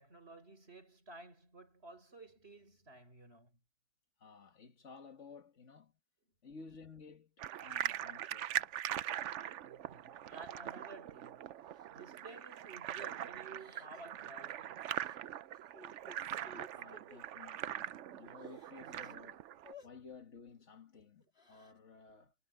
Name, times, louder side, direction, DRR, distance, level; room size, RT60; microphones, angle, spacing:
voice 1, 0.0-3.6 6.4-6.5 7.6-8.0 9.6-11.5 11.9-14.9 19.8-19.9 20.9-21.1, right 3 dB, 60° right, 6.1 m, -54 dB
voice 2, 4.2-5.9 6.4-8.7 16.7-19.4 19.8-22.3, left 5 dB, 85° left, 2.2 m, -55 dB
sound 1, 7.4-19.7, right 11 dB, 85° right, 1.0 m, -42 dB
Crying sobbing, 11.7-11.9 12.3-12.6 13.5-14.2 14.9-15.2 15.5-17.2 17.8-17.9 18.2-19.1 19.6-19.9 21.2-21.8, left 3 dB, 60° left, 3.1 m, -57 dB
omnidirectional pair, 1.2 m